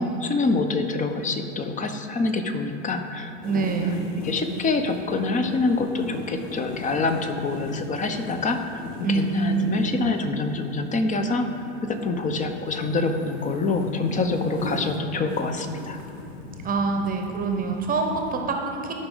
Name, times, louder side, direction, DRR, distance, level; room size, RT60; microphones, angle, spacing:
voice 1, 0.0-3.8 4.2-16.0, left 3 dB, 20° left, 7 dB, 0.7 m, -26 dB
sound 1, 3.4-18.4, left 3 dB, 60° left, 1.2 m, -39 dB
voice 2, 3.4-4.0 9.0-9.9 16.6-18.9, right 4 dB, 25° right, 3 dB, 0.9 m, -25 dB
12.5 x 5.2 x 3.9 m, 2.6 s
hypercardioid pair, 95°, 35 cm